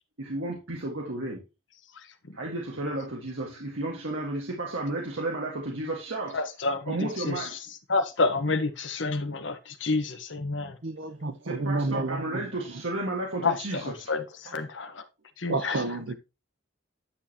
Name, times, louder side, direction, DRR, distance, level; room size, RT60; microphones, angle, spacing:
voice 1, 0.2-1.4 2.3-6.4 6.9-7.5 11.1-11.2 11.4-14.1, right 2 dB, 80° right, 1.8 m, -33 dB
voice 2, 1.9-2.4 6.3-10.8 13.4-15.0 15.4-15.8, left 3 dB, 65° left, 1.2 m, -29 dB
voice 3, 10.8-12.8 15.5-16.2, right 2 dB, 65° right, 0.9 m, -31 dB
9.8 x 6.4 x 2.9 m
head